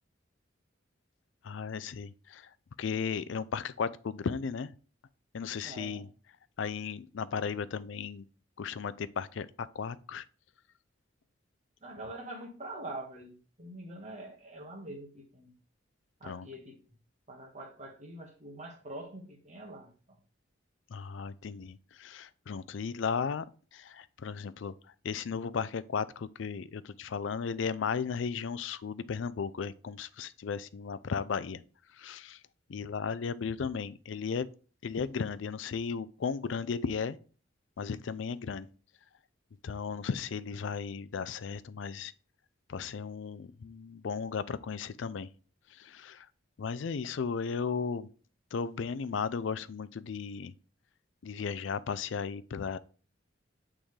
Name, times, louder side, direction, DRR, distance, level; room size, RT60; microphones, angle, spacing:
voice 1, 1.4-2.5 2.8-4.7 5.3-6.1 6.6-8.3 8.6-10.2 16.2-16.5 20.9-23.4 23.7-24.7 25.0-31.6 32.0-32.4 32.7-34.5 34.8-37.2 37.8-38.7 39.6-42.1 42.7-45.3 45.7-46.3 46.6-48.1 48.5-50.5 51.2-52.8, left 6 dB, 70° left, 0.4 m, -35 dB
voice 2, 5.6-6.1 11.8-15.5 16.2-16.9 17.3-20.2, right 1 dB, 35° right, 1.4 m, -45 dB
8.6 x 3.7 x 3.2 m
head